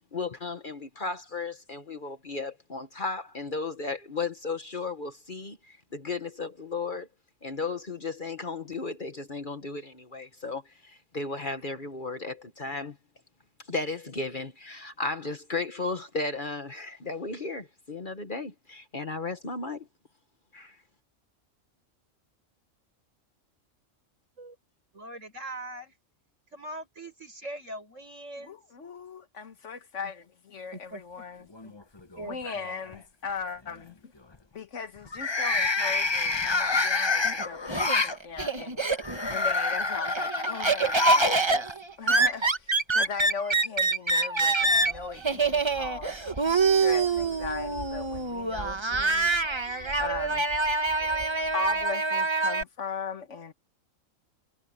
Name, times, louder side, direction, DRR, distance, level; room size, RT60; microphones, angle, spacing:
voice 1, 0.1-7.1 7.4-13.0 13.7-19.9 20.5-20.8, left 3 dB, 40° left, 1.5 m, -35 dB
voice 2, 24.9-25.9 26.5-28.6 30.7-31.3 32.2-32.6, right 1 dB, 70° right, 7.6 m, -41 dB
voice 3, 28.4-31.7 32.2-34.1 34.5-41.7 42.0-46.1 46.8-49.3 50.0-50.5 51.5-53.5, left 5 dB, 65° left, 1.6 m, -38 dB
sound 1, 31.6-32.2 32.6-33.0 35.0-38.2 39.0-41.4 41.7-41.8 42.9-43.0, left 2 dB, 20° left, 0.9 m, -27 dB
Laughter, 37.2-39.4 39.7-52.6, right 3 dB, 20° right, 1.1 m, -26 dB
Waves surf, 44.6-51.9, right 2 dB, 45° right, 2.5 m, -46 dB
omnidirectional pair, 1.4 m